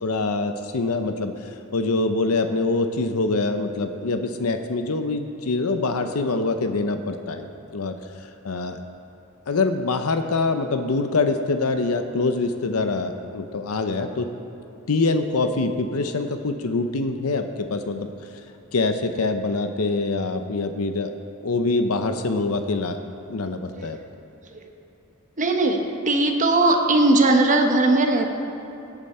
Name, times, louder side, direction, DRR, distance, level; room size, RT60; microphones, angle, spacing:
voice 1, 0.0-8.0 8.4-8.8 9.5-14.3 14.9-18.1 18.7-21.1 21.4-23.0 23.3-24.0, left 3 dB, 90° left, 7 dB, 0.7 m, -24 dB
voice 2, 25.4-28.3, right 2 dB, 35° right, 3 dB, 1.1 m, -19 dB
17.5 x 9.0 x 4.3 m, 2.9 s
head